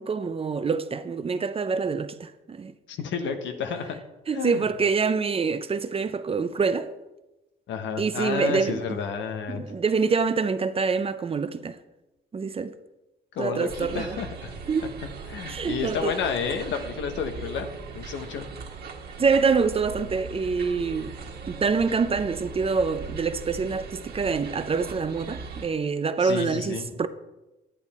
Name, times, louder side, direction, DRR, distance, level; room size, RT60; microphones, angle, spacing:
voice 1, 0.0-2.7 4.3-6.9 8.0-8.8 9.5-11.8 12.3-12.7 13.4-14.2 14.7-15.0 15.5-16.1 19.2-21.1 21.5-27.1, right 5 dB, 30° right, 0.5 m, -26 dB
voice 2, 2.9-4.0 4.3-4.7 7.7-9.6 13.3-14.6 15.3-17.7 17.9-18.5 26.2-26.9, left 6 dB, 85° left, 1.1 m, -31 dB
sound 1, 13.7-25.7, right 5 dB, 55° right, 1.5 m, -39 dB
9.9 x 8.9 x 4.2 m
cardioid pair, 105°, 19 cm